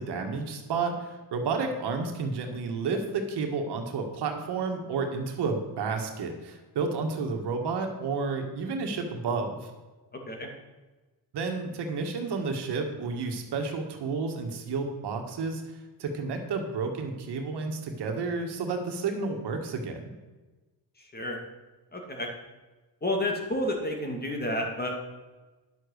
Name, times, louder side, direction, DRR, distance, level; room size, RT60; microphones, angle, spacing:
voice 1, 0.0-9.7 11.3-15.6 16.0-20.1, right 4 dB, 75° right, 4 dB, 1.9 m, -31 dB
voice 2, 10.1-10.5 21.1-21.4 21.9-22.3 23.0-24.9, left 1 dB, 25° left, 2 dB, 2.4 m, -30 dB
10.5 x 7.1 x 6.6 m, 1.2 s
cardioid pair, 105°, 40 cm